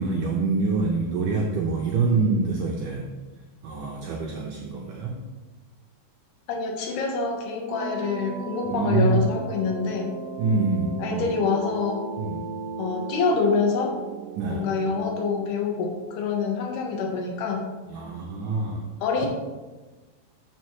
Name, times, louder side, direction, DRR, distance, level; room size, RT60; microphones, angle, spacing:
voice 1, 0.0-3.1 3.6-5.2 8.7-9.3 10.4-11.2 12.2-12.4 14.4-14.7 17.9-18.9, right 3 dB, 85° right, 0 dB, 1.9 m, -25 dB
voice 2, 6.5-10.2 11.0-12.0 12.8-13.9 14.5-17.7 19.0-19.3, left 4 dB, 75° left, 1 dB, 3.0 m, -26 dB
sound 1, 7.7-15.3, right 6 dB, 65° right, 2.2 m, -36 dB
12.0 x 5.7 x 3.1 m, 1.2 s
omnidirectional pair, 4.8 m